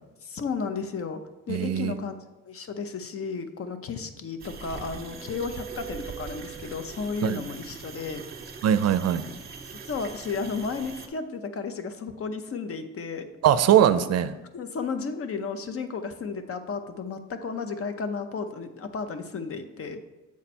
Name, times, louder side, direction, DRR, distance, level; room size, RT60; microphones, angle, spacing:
voice 1, 0.2-1.2 1.5-2.2 2.5-8.2 9.9-13.3 14.5-20.0, left 5 dB, 50° left, 9 dB, 0.7 m, -33 dB
voice 2, 1.5-1.9 7.2-7.4 8.6-9.2 13.4-14.3, right 10 dB, 55° right, 12 dB, 0.5 m, -21 dB
sound 1, 4.2-7.2, right 9 dB, 10° right, 0.6 m, -44 dB
sound 2, 4.4-11.1, right 5 dB, 30° right, 1.0 m, -42 dB
7.3 x 4.3 x 4.2 m, 1.1 s
cardioid pair, 90°, 30 cm